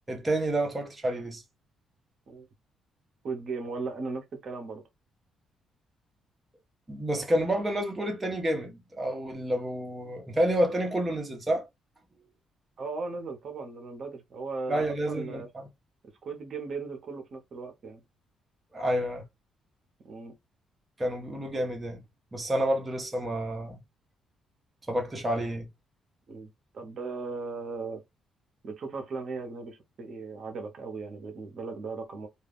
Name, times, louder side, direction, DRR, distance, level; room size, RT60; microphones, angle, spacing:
voice 1, 0.1-1.4 6.9-11.7 14.7-15.7 18.7-19.2 21.0-22.0 22.3-23.8 24.9-25.7, right 1 dB, 20° right, 0.8 m, -29 dB
voice 2, 3.2-4.8 12.8-15.5 16.2-18.0 20.0-20.3 26.3-28.0 28.6-32.3, right 4 dB, 55° right, 0.8 m, -37 dB
2.3 x 2.2 x 3.4 m
cardioid pair, 90°, 0 cm